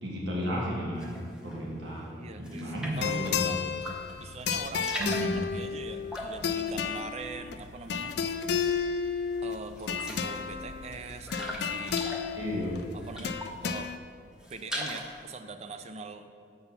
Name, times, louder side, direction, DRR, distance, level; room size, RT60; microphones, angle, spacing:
voice 1, 0.0-3.5 5.0-5.3 12.3-12.7, equal, 75° right, -3 dB, 1.4 m, -33 dB
sound 1, 1.0-1.6 2.0-3.2 3.7-4.2 4.5-8.9 9.3-9.4 9.7-13.7 14.1-15.2, equal, 5° right, 0.8 m, -40 dB
voice 2, 2.1-3.6 4.2-8.2 9.4-12.0 12.9-13.9 14.5-16.3, right 3 dB, 35° right, 9 dB, 0.4 m, -42 dB
sound 2, 2.9-14.0, left 6 dB, 60° left, 0.4 m, -33 dB
6.9 x 5.4 x 5.6 m, 2.1 s
head